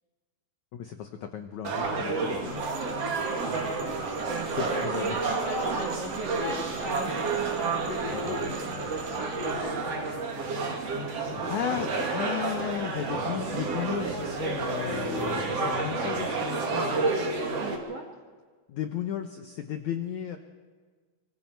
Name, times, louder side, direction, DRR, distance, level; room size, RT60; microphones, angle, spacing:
voice 1, 0.7-3.0 4.3-5.2 8.1-8.4 11.3-17.1 18.7-20.4, left 9 dB, 80° left, 6 dB, 1.6 m, -35 dB
sound 1, 1.6-17.8, right 3 dB, 40° right, 3.1 m, -30 dB
sound 2, 2.3-16.5, left 5 dB, 55° left, 2.6 m, -45 dB
sound 3, 2.5-9.6, right 4 dB, 80° right, 6.2 m, -42 dB
voice 2, 3.7-4.2 4.6-8.5 9.5-10.1 17.6-18.1, right 3 dB, 60° right, 1 dB, 1.6 m, -39 dB
26.0 x 25.5 x 4.6 m, 1.5 s
omnidirectional pair, 4.9 m